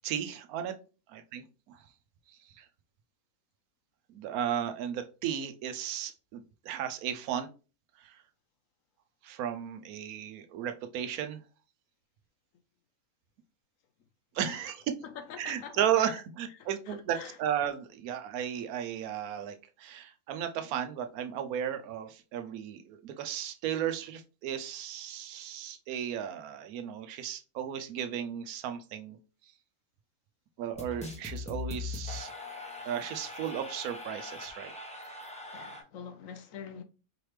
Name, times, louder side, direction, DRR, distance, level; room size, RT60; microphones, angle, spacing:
voice 1, 0.0-0.7 1.1-1.8 2.5-2.7 4.1-7.5 8.0-8.2 9.2-11.4 14.3-14.8 15.4-29.2 30.6-32.3 32.8-34.7, right 9 dB, 75° right, 1.0 m, -35 dB
voice 2, 15.0-16.2 16.5-17.4 35.5-36.8, left 7 dB, 70° left, 0.9 m, -45 dB
sound 1, 30.7-35.8, left 3 dB, 5° left, 0.5 m, -41 dB
4.9 x 3.2 x 3.1 m
omnidirectional pair, 1.6 m